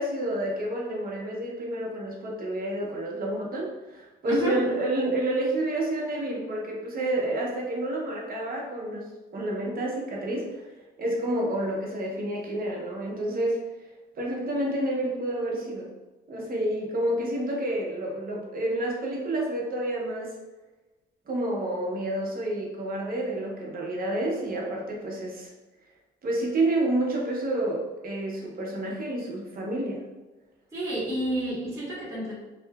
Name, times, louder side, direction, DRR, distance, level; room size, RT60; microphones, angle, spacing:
voice 1, 0.0-10.6 11.0-13.6 14.1-15.9 16.3-20.4 21.3-25.5 26.2-30.0, right 1 dB, 45° right, -2 dB, 0.8 m, -29 dB
voice 2, 4.3-4.6 30.7-32.3, right 1 dB, 15° right, -8 dB, 1.2 m, -29 dB
2.8 x 2.4 x 2.3 m, 1.2 s
cardioid pair, 90°, 20 cm